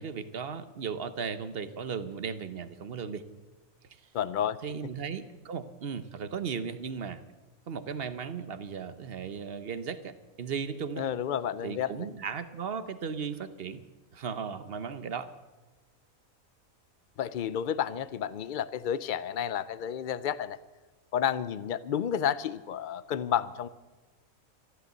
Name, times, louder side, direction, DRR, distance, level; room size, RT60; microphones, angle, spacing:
voice 1, 0.0-3.2 4.6-7.2 7.7-11.0 11.6-13.8 14.1-15.3, right 6 dB, 50° right, 12 dB, 0.9 m, -36 dB
voice 2, 4.1-4.6 11.0-12.1 17.2-20.6 21.1-23.7, left 9 dB, 65° left, 16 dB, 0.5 m, -31 dB
13.5 x 11.5 x 8.0 m, 1.2 s
omnidirectional pair, 1.5 m